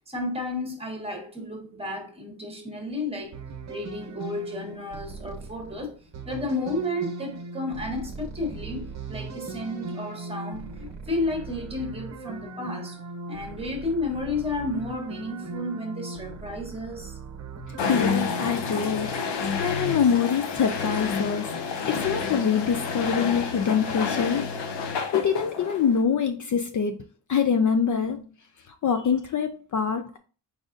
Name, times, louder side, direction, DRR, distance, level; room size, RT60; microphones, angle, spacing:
voice 1, 0.1-3.4 3.7-13.0 13.3-17.2, left 2 dB, 15° right, 1.2 m, -32 dB
sound 1, 3.3-18.6, right 3 dB, 40° right, 0.8 m, -39 dB
sound 2, 17.8-26.0, left 5 dB, 80° left, 0.9 m, -29 dB
voice 2, 17.8-21.5 21.9-24.8 25.1-27.0 27.3-28.3 28.7-30.2, left 7 dB, 45° left, 0.5 m, -25 dB
4.8 x 4.0 x 2.5 m
wide cardioid pair, 160°, 42 cm